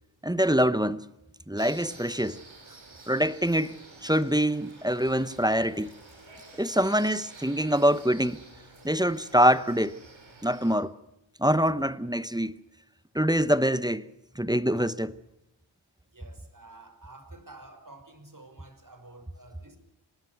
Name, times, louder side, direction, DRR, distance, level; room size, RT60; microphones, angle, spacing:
voice 1, 0.2-1.1 1.5-2.4 3.1-5.9 6.6-8.4 8.8-10.0 10.4-10.9 11.4-12.5 13.1-14.1 14.4-15.1, equal, 10° right, 0.9 m, -25 dB
sound 1, 1.6-10.7, right 3 dB, 75° right, 4.6 m, -50 dB
voice 2, 16.1-19.8, right 2 dB, 40° right, 5.4 m, -50 dB
25.5 x 19.5 x 6.7 m
wide cardioid pair, 50°, 47 cm